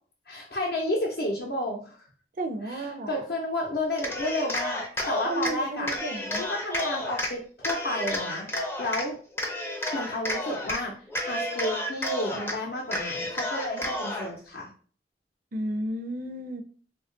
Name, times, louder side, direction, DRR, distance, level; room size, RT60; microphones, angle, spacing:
voice 1, 0.3-2.0 2.6-5.9 6.4-8.5 8.8-9.2 9.9-11.0 11.3-14.7, left 1 dB, 65° left, -2 dB, 0.6 m, -31 dB
voice 2, 2.4-3.2 5.2-6.4 15.5-16.6, right 1 dB, 50° right, 6 dB, 0.4 m, -32 dB
Cheering, 3.9-5.5 5.9-7.3 7.6-9.0 9.4-10.8 11.1-12.5 12.9-14.3, left 1 dB, 15° left, 0.4 m, -31 dB
2.8 x 2.3 x 3.7 m, 0.43 s
head